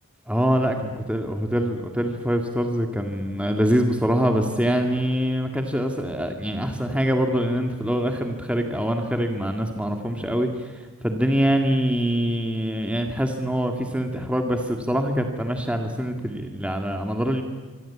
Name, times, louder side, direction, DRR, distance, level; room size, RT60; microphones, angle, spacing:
voice 1, 0.3-10.8 11.0-17.4, equal, 5° right, 4 dB, 1.9 m, -24 dB
26.0 x 25.0 x 8.6 m, 1.4 s
head